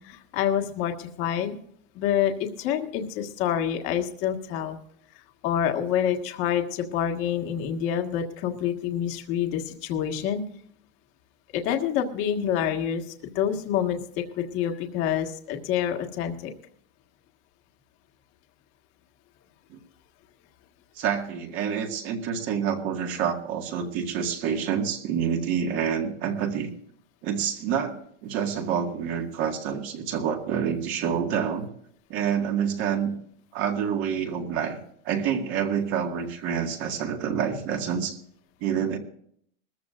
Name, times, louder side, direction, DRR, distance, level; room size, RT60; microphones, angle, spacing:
voice 1, 0.0-1.6 1.9-4.8 5.1-10.4 11.5-16.5, left 9 dB, 40° left, 4 dB, 1.6 m, -27 dB
voice 2, 21.0-26.7 27.2-31.7 32.1-33.1 33.5-34.8 35.1-38.2 38.6-39.0, right 7 dB, 40° right, 3 dB, 1.9 m, -27 dB
20.5 x 14.5 x 2.5 m, 0.65 s
supercardioid pair, 165°, 31 cm